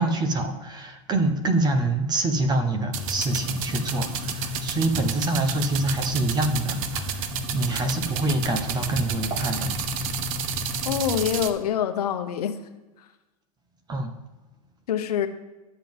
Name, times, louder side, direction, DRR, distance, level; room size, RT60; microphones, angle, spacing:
voice 1, 0.0-7.3 7.5-9.7 13.9-14.1, right 2 dB, 20° right, 7 dB, 1.1 m, -26 dB
sound 1, 2.8-11.3, left 6 dB, 10° left, 1.0 m, -35 dB
sound 2, 2.9-11.5, right 9 dB, 60° right, 0.8 m, -31 dB
voice 2, 10.9-12.6 14.9-15.3, left 9 dB, 90° left, 8 dB, 0.9 m, -25 dB
11.5 x 7.6 x 3.7 m, 1.1 s
supercardioid pair, 125°, 19 cm